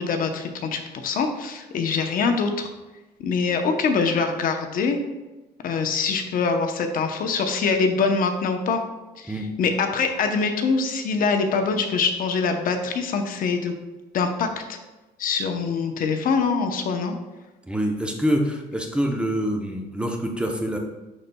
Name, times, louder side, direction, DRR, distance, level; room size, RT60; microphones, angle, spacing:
voice 1, 0.0-2.7 3.2-5.0 5.6-8.8 9.2-13.7 14.1-14.8 15.2-17.2, left 5 dB, 55° left, 5 dB, 0.8 m, -24 dB
voice 2, 17.7-20.8, equal, 5° right, 2 dB, 0.7 m, -25 dB
11.0 x 4.0 x 2.3 m, 1.1 s
cardioid pair, 110°, 17 cm